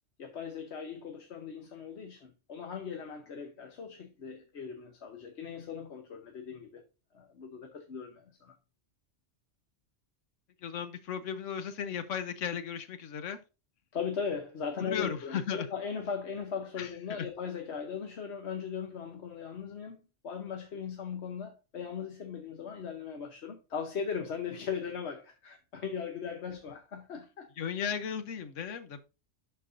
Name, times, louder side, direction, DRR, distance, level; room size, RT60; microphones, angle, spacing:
voice 1, 0.2-6.8 7.1-8.5 13.9-27.5, left 6 dB, 65° left, 1.2 m, -38 dB
voice 2, 10.6-13.4 14.8-15.7 16.8-17.3 27.6-29.0, left 7 dB, 85° left, 1.2 m, -36 dB
11.5 x 4.6 x 2.6 m
omnidirectional pair, 1.3 m